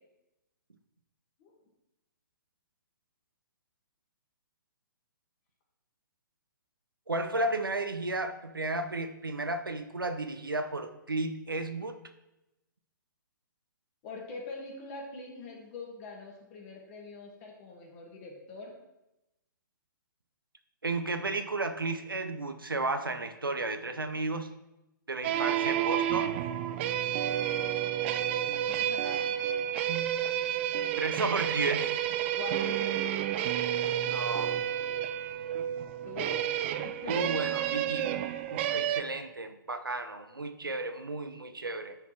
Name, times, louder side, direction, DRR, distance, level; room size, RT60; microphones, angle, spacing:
voice 1, 7.1-11.9 20.8-24.5 25.1-26.4 31.0-31.9 34.0-34.6 37.1-38.1 38.5-42.0, right 2 dB, 85° right, 8 dB, 0.7 m, -33 dB
voice 2, 14.0-18.7 28.7-29.5 32.3-33.5 36.0-37.3, left 4 dB, 35° left, 0 dB, 2.2 m, -44 dB
sound 1, 25.2-39.0, right 11 dB, 35° right, 0.4 m, -30 dB
9.8 x 4.2 x 4.6 m, 0.92 s
figure-of-eight pair, 125°, 11 cm